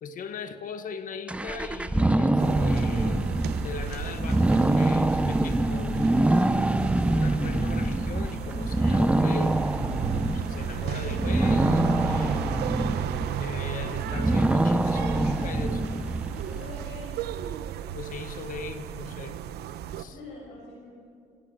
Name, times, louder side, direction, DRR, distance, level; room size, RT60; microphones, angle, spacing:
voice 1, 0.0-6.8 7.1-9.5 10.2-12.5 13.4-16.1 17.9-19.4 20.0-20.2, left 5 dB, 55° left, 10 dB, 1.3 m, -39 dB
sound 1, 1.3-16.7, right 2 dB, 5° right, 0.6 m, -25 dB
sound 2, 2.4-20.0, right 10 dB, 75° right, 1.0 m, -35 dB
voice 2, 16.5-17.2 20.0-20.9, left 2 dB, 90° left, -3 dB, 6.3 m, -44 dB
26.5 x 16.5 x 6.6 m, 2.4 s
cardioid pair, 110°, 17 cm